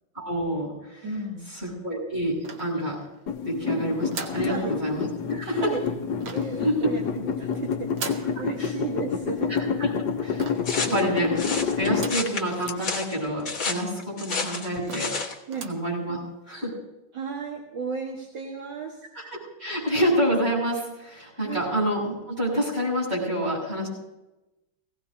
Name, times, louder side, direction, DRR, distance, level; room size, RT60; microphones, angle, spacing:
voice 1, 0.1-1.1 1.5-3.0 3.4-5.8 6.6-6.9 8.3-8.7 9.5-9.9 10.2-10.4 10.7-15.1 15.6-16.2 16.5-16.7 19.1-23.9, equal, 30° right, -4 dB, 6.7 m, -28 dB
voice 2, 1.0-1.5 3.8-3.9 4.4-4.7 5.5-5.8 6.3-9.5 10.0-10.1 10.5-11.0 15.5-15.7 17.1-19.0 21.3-21.6, right 4 dB, 65° right, -1 dB, 2.2 m, -34 dB
sound 1, 2.4-3.2 4.1-4.5 6.2-6.6 7.9-8.4 10.4-10.8 11.9-12.4 12.8-12.9 13.1-13.2 14.0-14.1 14.5-14.6 14.9-15.2 15.5-15.9, right 5 dB, 90° right, 2.0 m, -38 dB
sound 2, 3.3-12.7, left 6 dB, 60° left, 1.3 m, -29 dB
sound 3, 10.6-15.4, left 4 dB, 45° left, 1.9 m, -31 dB
19.5 x 17.0 x 2.7 m, 0.99 s
omnidirectional pair, 2.3 m